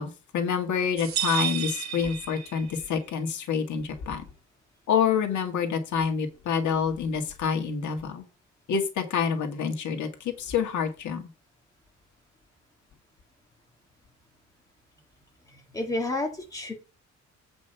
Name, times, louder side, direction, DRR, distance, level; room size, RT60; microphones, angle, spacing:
voice 1, 0.0-4.2 4.9-8.2 8.7-11.2, left 6 dB, 70° left, 4 dB, 1.8 m, -27 dB
sound 1, 1.0-2.9, right 9 dB, 60° right, 2.4 m, -31 dB
voice 2, 15.5-16.7, left 2 dB, 10° left, 1 dB, 2.1 m, -31 dB
8.7 x 5.2 x 5.5 m, 0.30 s
cardioid pair, 170°, 31 cm